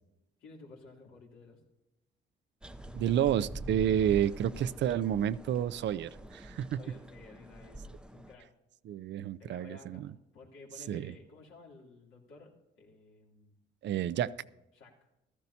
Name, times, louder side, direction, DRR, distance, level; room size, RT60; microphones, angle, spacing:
voice 1, 0.4-1.6 6.7-8.5 9.4-12.5 12.8-13.6 14.7-14.9, left 3 dB, 75° left, 3.1 m, -54 dB
sound 1, 2.6-8.3, right 1 dB, 5° right, 0.6 m, -45 dB
voice 2, 2.9-6.8 8.9-10.1 10.9-11.1 13.8-14.3, right 10 dB, 65° right, 0.5 m, -30 dB
15.0 x 13.5 x 2.8 m
cardioid pair, 90°, 20 cm